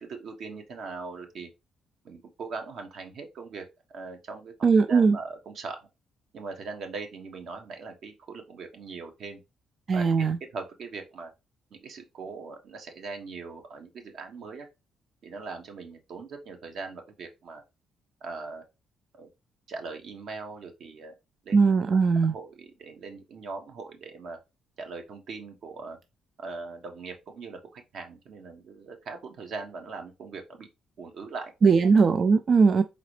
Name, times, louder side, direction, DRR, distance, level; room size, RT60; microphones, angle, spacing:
voice 1, 0.0-1.5 2.0-3.6 3.9-5.8 6.3-9.4 9.9-10.3 10.5-11.3 11.7-14.7 15.2-17.6 18.2-18.6 19.1-19.3 19.7-21.1 21.4-21.7 22.3-24.4 24.8-26.0 26.4-30.7 31.0-31.5 32.7-32.8, right 4 dB, 65° right, 1.2 m, -40 dB
voice 2, 4.6-5.2 9.9-10.4 21.5-22.4 31.6-32.8, right 5 dB, 45° right, 0.3 m, -20 dB
4.1 x 3.8 x 3.2 m
cardioid pair, 90°, 0 cm